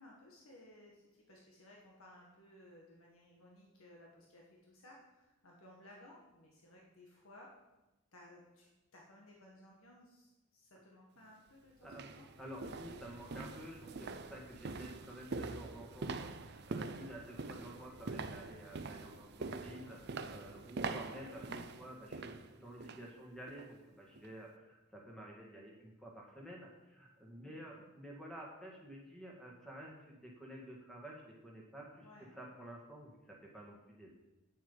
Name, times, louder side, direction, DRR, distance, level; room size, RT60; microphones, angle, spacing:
voice 1, 0.0-7.5 8.1-12.3 19.4-20.0 27.4-27.8 32.0-32.3, left 1 dB, 80° left, -2 dB, 1.6 m, -59 dB
sound 1, 11.2-11.3 11.8-23.1 23.5-23.7 24.2-24.3, right 3 dB, 50° right, 0.5 m, -44 dB
voice 2, 12.4-34.1, equal, ahead, -2 dB, 1.8 m, -51 dB
8.7 x 7.4 x 5.5 m, 1.0 s
head